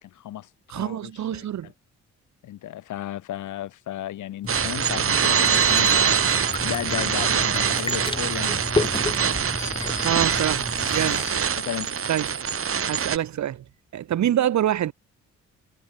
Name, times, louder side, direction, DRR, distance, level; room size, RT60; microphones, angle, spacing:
voice 1, 0.0-1.7 2.4-6.2 6.6-9.0 11.0-11.9, left 13 dB, 80° left, 4.9 m, -35 dB
voice 2, 0.7-1.7 9.8-11.2 12.1-12.4 12.9-13.6 13.9-14.9, right 11 dB, 65° right, 2.6 m, -26 dB
sound 1, 4.4-11.1, left 2 dB, 15° left, 4.8 m, -32 dB
sound 2, 4.5-13.2, right 7 dB, 45° right, 3.4 m, -24 dB
sound 3, 9.3-13.3, left 6 dB, 40° left, 5.8 m, -43 dB
cardioid pair, 90°, 30 cm